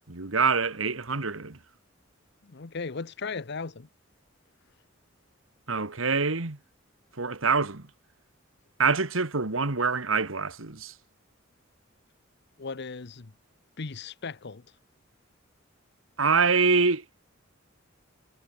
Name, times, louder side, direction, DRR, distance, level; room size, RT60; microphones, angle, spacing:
voice 1, 0.1-1.6 5.7-6.6 7.2-7.9 8.8-10.9 16.2-17.0, right 4 dB, 90° right, 1.9 m, -25 dB
voice 2, 2.4-3.9 12.6-13.3 13.8-14.6, left 4 dB, 60° left, 0.9 m, -37 dB
head